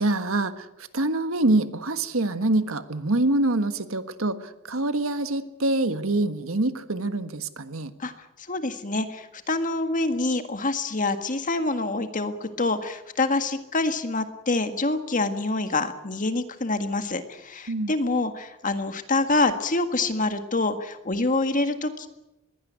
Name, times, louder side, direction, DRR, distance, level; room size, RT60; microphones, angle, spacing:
voice 1, 0.0-7.9 17.7-17.9, right 2 dB, 90° right, 10 dB, 1.5 m, -25 dB
voice 2, 8.5-22.1, left 2 dB, 40° left, 8 dB, 1.8 m, -26 dB
21.5 x 16.5 x 9.4 m, 0.97 s
head